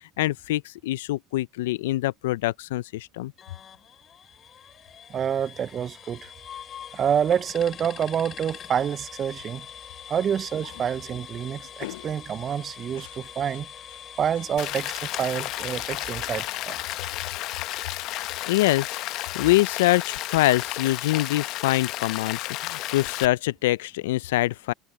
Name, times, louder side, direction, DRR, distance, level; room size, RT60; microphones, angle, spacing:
voice 1, 0.2-3.3 11.8-12.1 13.0-13.1 18.4-19.0 19.3-24.7, left 17 dB, 85° left, 0.4 m, -24 dB
sound 1, 3.4-19.1, left 8 dB, 40° left, 6.3 m, -44 dB
voice 2, 5.1-6.3 6.9-9.7 10.1-13.7 14.2-17.0, right 8 dB, 35° right, 0.5 m, -27 dB
Rain, 14.6-23.3, left 17 dB, 60° left, 0.8 m, -32 dB
supercardioid pair, 100°, 0 cm